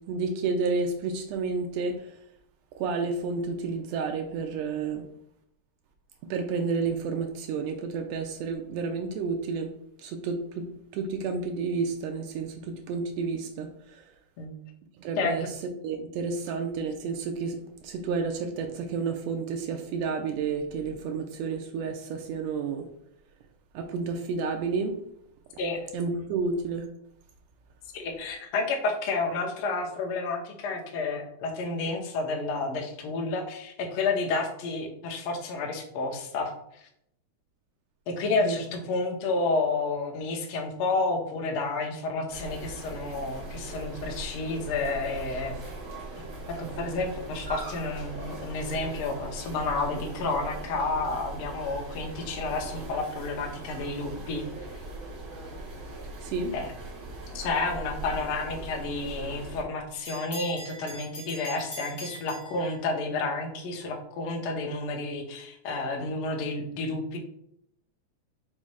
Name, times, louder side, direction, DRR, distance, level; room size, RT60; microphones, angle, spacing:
voice 1, 0.1-2.0 2.8-5.0 6.3-9.7 10.0-10.6 10.9-13.7 15.0-15.5 15.8-17.6 17.8-22.9 23.7-25.0 25.9-26.9 38.4-38.6 56.2-56.5, right 4 dB, 85° right, 4 dB, 1.5 m, -30 dB
voice 2, 15.2-15.5 25.6-25.8 27.9-36.8 38.1-45.6 46.2-54.4 56.5-56.7 57.3-67.2, left 3 dB, 70° left, 1 dB, 1.3 m, -30 dB
sound 1, 42.3-59.6, right 2 dB, 50° right, 1.5 m, -40 dB
Bell, 59.1-63.2, right 1 dB, 40° left, 0.4 m, -44 dB
5.5 x 2.0 x 4.7 m, 0.74 s
omnidirectional pair, 3.5 m